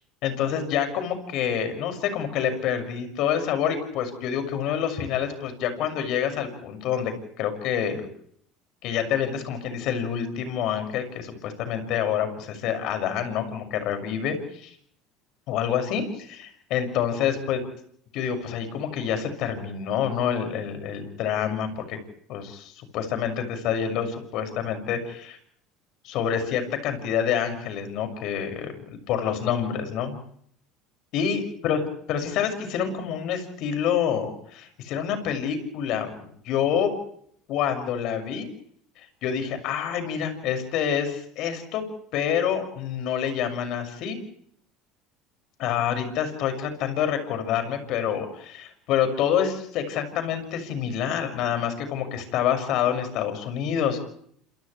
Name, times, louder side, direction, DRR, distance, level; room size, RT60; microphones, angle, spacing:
voice 1, 0.2-8.1 8.8-14.4 14.6-14.7 15.5-16.0 16.7-17.6 18.1-22.0 22.3-25.4 26.0-30.2 31.1-31.8 32.1-36.9 37.5-38.5 39.2-41.8 42.1-44.2 45.6-54.0, left 8 dB, 60° left, 6 dB, 6.2 m, -27 dB
29.0 x 27.5 x 3.3 m, 0.64 s
supercardioid pair, 110°, 0 cm